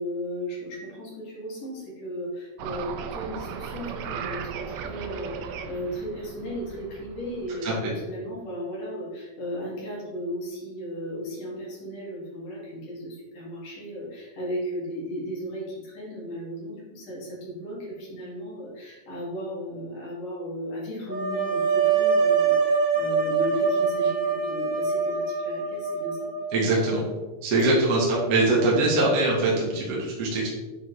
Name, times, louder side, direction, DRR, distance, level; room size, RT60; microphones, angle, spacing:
voice 1, 0.0-26.3, equal, 70° left, -6 dB, 3.7 m, -35 dB
sound 1, 2.6-8.0, right 6 dB, 85° right, 1.6 m, -37 dB
sound 2, 21.1-27.0, right 5 dB, 10° right, 1.2 m, -24 dB
voice 2, 26.5-27.1 27.4-30.5, right 2 dB, 55° right, -5 dB, 2.1 m, -22 dB
8.7 x 4.5 x 3.2 m, 1.2 s
omnidirectional pair, 3.8 m